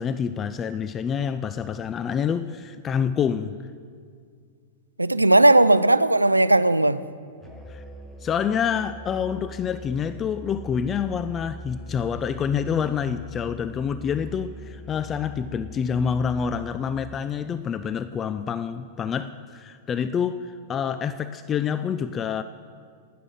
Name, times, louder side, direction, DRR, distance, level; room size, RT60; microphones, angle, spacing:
voice 1, 0.0-3.6 7.7-7.8 8.2-22.4, left 7 dB, 25° left, 0.3 m, -27 dB
voice 2, 5.0-7.0, right 2 dB, 90° right, 0.3 m, -17 dB
Musical instrument, 7.4-17.3, left 1 dB, ahead, 1.4 m, -41 dB
10.0 x 9.8 x 6.5 m
figure-of-eight pair, 95°, 0 cm